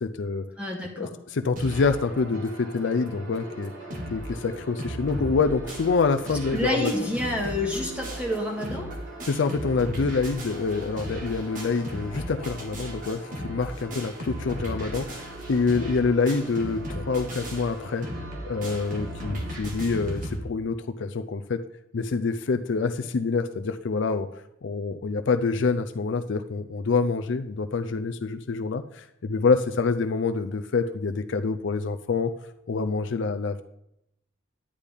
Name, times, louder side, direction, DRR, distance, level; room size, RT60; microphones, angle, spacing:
voice 1, 0.0-0.4 1.0-3.7 4.1-6.9 9.2-18.1 18.4-21.6 21.9-24.3 24.6-32.3 32.7-33.6, left 4 dB, 60° left, 8 dB, 0.4 m, -26 dB
voice 2, 0.6-1.1 6.5-8.9, left 1 dB, 5° right, -1 dB, 1.9 m, -28 dB
sound 1, 1.6-2.0 2.5-2.6 2.8-2.9 3.4-3.5 3.6-4.3 4.5-20.4, equal, 40° right, 1.6 m, -36 dB
sound 2, 1.7-19.5, right 1 dB, 65° right, 2.3 m, -43 dB
10.0 x 9.9 x 3.5 m, 0.82 s
head